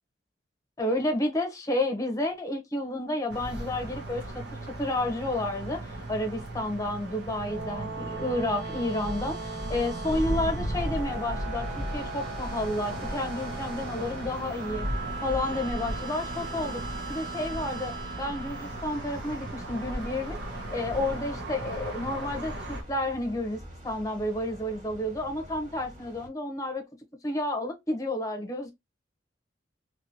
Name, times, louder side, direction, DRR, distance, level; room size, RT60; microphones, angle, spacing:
voice 1, 0.8-4.5 4.8-14.9 15.2-16.8 17.1-20.4 20.7-26.8 27.2-28.7, left 1 dB, 20° left, 0.8 m, -31 dB
sound 1, 3.3-22.8, right 1 dB, 90° right, 1.1 m, -36 dB
sound 2, 7.2-19.5, right 3 dB, 65° right, 1.8 m, -39 dB
sound 3, 10.7-26.3, equal, 45° right, 1.6 m, -47 dB
3.2 x 3.0 x 2.7 m
head